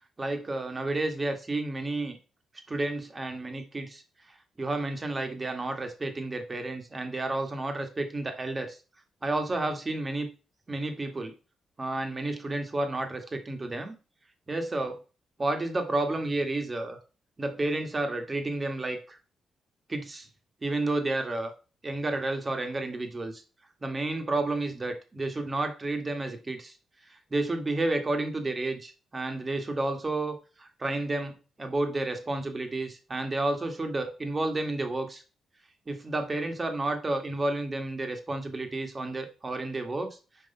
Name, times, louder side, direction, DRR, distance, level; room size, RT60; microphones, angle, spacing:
voice 1, 0.2-2.2 2.7-4.0 4.3-8.8 9.2-10.3 10.7-11.3 11.8-14.0 14.5-15.0 15.4-17.0 17.4-19.2 19.9-20.3 20.6-21.5 21.8-23.4 23.8-26.7 27.1-35.2 35.9-40.2, right 2 dB, 25° right, 6 dB, 1.5 m, -31 dB
5.9 x 4.7 x 5.5 m, 0.34 s
cardioid pair, 110°, 0 cm